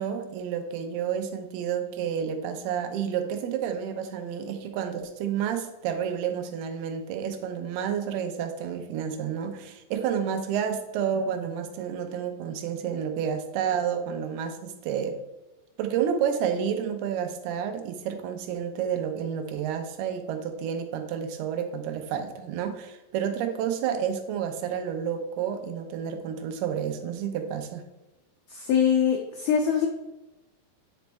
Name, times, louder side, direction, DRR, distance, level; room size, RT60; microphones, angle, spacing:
voice 1, 0.0-15.2 15.8-27.8, right 8 dB, 85° right, 6 dB, 2.7 m, -30 dB
voice 2, 28.5-29.9, left 7 dB, 85° left, 3 dB, 1.8 m, -23 dB
9.3 x 5.1 x 3.4 m, 1.0 s
omnidirectional pair, 4.5 m